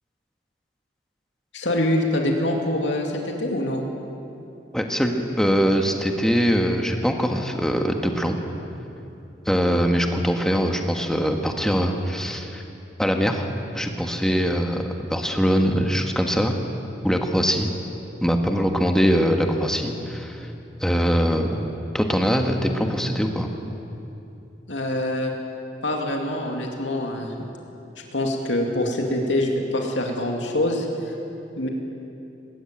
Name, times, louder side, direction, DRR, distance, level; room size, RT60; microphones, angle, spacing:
voice 1, 1.5-3.8 24.7-25.3 25.8-27.3 28.1-31.1 31.6-31.7, left 1 dB, 85° left, 1 dB, 2.6 m, -24 dB
voice 2, 4.7-8.4 9.4-12.6 13.0-13.5 13.7-16.5 17.0-17.7 18.2-20.5 20.8-21.7 21.9-23.5, equal, 5° left, 3 dB, 1.5 m, -22 dB
19.5 x 19.0 x 9.0 m, 2.8 s
head